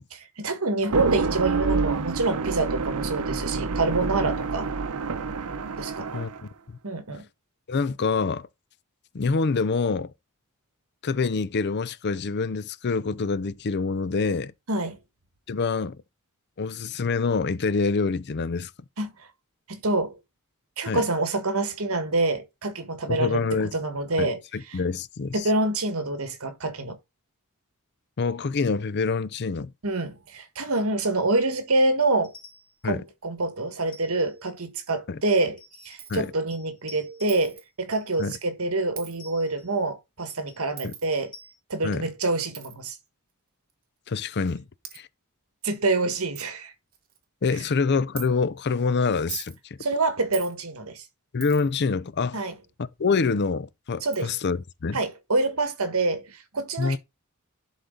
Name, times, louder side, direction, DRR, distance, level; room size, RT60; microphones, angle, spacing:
voice 1, 0.1-4.7 5.8-6.2 6.8-7.2 14.7-15.0 19.0-19.1 19.7-20.2 20.8-24.4 24.7-24.8 25.3-27.0 29.8-32.3 32.8-35.6 35.8-41.3 41.7-43.0 45.6-46.7 49.8-51.0 52.3-52.5 54.0-54.3 54.9-57.0, right 2 dB, 70° right, 1.6 m, -26 dB
sound 1, 0.8-6.5, right 4 dB, 90° right, 0.7 m, -28 dB
voice 2, 7.7-8.5 9.1-10.1 11.0-14.5 15.5-16.0 16.6-18.7 20.9-21.0 23.1-23.8 24.2-25.5 28.2-29.7 32.8-33.0 35.1-35.2 36.1-36.3 38.2-38.3 40.8-40.9 41.8-42.0 44.1-44.6 44.9-45.1 47.4-49.6 51.3-52.4 52.8-55.0 56.8-57.0, left 4 dB, 50° left, 0.5 m, -26 dB
sound 2, 32.2-32.8 33.8-34.5 35.6-36.2 36.5-37.6 37.9-38.4 39.2-39.8 40.3-40.7 41.1-41.5, left 3 dB, 20° left, 2.3 m, -50 dB
Coin (dropping), 36.0-36.2 37.3-37.6 39.0-39.2 40.8-41.1 42.5-42.7 43.7-43.8 44.5-44.6 44.8-45.0 45.6-45.7 46.0-46.1 46.4-46.5 46.9-47.2 48.2-48.3 49.1-49.6 50.3-50.5 51.4-51.8 53.4-53.5 54.1-54.3, right 10 dB, 40° right, 1.4 m, -40 dB
11.0 x 4.2 x 3.8 m
head